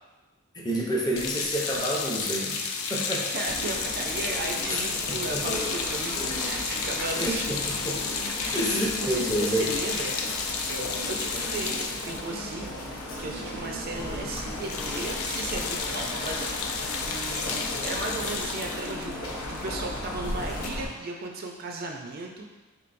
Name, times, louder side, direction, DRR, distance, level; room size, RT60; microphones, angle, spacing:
voice 1, 0.5-2.6 2.9-3.3 4.7-5.4 7.2-8.0 8.5-9.7, right 1 dB, 20° left, -3 dB, 0.6 m, -29 dB
sound 1, 1.2-13.5 13.8-14.0 14.3-20.7, left 5 dB, 70° left, 0.4 m, -32 dB
voice 2, 3.3-7.4 8.4-8.7 9.0-12.7 13.2-22.5, right 2 dB, 45° right, 1 dB, 0.4 m, -36 dB
sound 2, 3.5-20.9, left 1 dB, 90° left, 0.8 m, -36 dB
4.4 x 3.7 x 2.5 m, 1.1 s
head